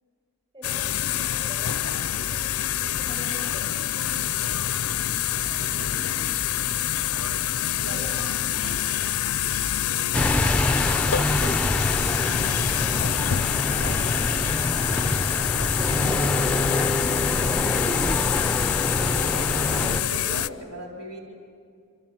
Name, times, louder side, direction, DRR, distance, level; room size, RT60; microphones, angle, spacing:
voice 1, 0.5-7.4 7.9-13.4, equal, 25° right, 2 dB, 7.0 m, -47 dB
sound 1, 0.6-20.5, left 11 dB, 90° left, 0.6 m, -26 dB
sound 2, 5.4-17.9, right 2 dB, 55° right, 0.6 m, -44 dB
voice 2, 7.8-8.2 13.8-14.1 18.8-21.2, equal, 80° right, -2 dB, 4.1 m, -38 dB
sound 3, 10.1-20.0, left 1 dB, 5° left, 0.6 m, -25 dB
27.5 x 24.5 x 7.7 m, 2.3 s
head